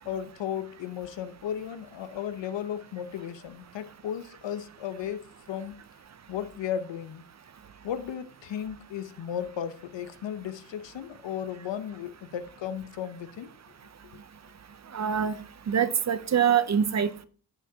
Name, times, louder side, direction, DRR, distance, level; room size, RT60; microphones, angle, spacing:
voice 1, 0.0-5.8 6.3-7.2 7.8-13.5, left 9 dB, 85° left, 0.8 m, -35 dB
voice 2, 14.9-15.3 15.7-17.2, right 8 dB, 40° right, 0.6 m, -24 dB
15.0 x 5.8 x 2.8 m
wide cardioid pair, 155°, 43 cm